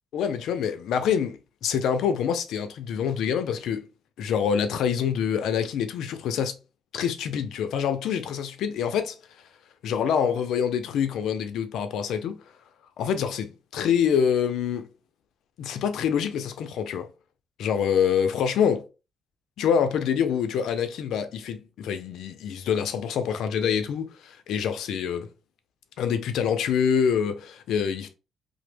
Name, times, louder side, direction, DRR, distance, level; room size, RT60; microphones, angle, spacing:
voice 1, 0.1-3.9 4.2-6.6 6.9-9.2 9.8-12.4 13.0-14.9 15.6-17.1 17.6-18.8 19.6-25.3 26.0-28.1, left 7 dB, 80° left, 0.5 m, -26 dB
2.9 x 2.0 x 3.3 m
cardioid pair, 90°, 0 cm